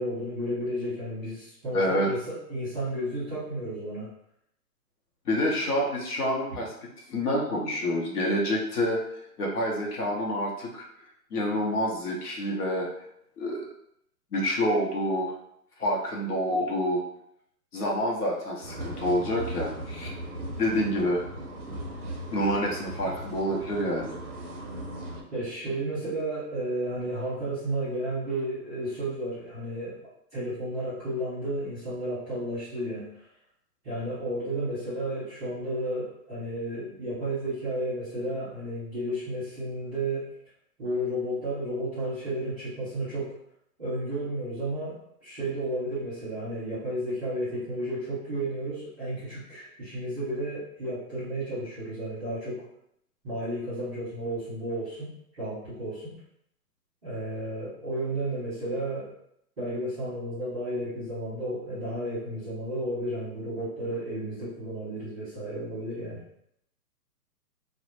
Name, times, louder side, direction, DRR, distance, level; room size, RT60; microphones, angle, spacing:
voice 1, 0.0-4.1 25.3-30.0 30.3-33.2 33.8-40.3 40.8-43.3 43.8-52.6 53.2-56.1 57.0-59.1 59.6-66.2, right 1 dB, 10° right, -14 dB, 0.8 m, -32 dB
voice 2, 1.7-2.1 5.3-6.7 7.1-9.0 9.4-10.8 11.3-12.9 13.4-13.6 14.3-15.3 15.8-17.0 17.7-20.1 20.6-21.2 22.3-24.1, equal, 65° left, -2 dB, 0.8 m, -27 dB
sound 1, 18.6-25.2, right 1 dB, 50° right, 0.5 m, -37 dB
2.0 x 2.0 x 3.0 m, 0.73 s
hypercardioid pair, 160°, 50 cm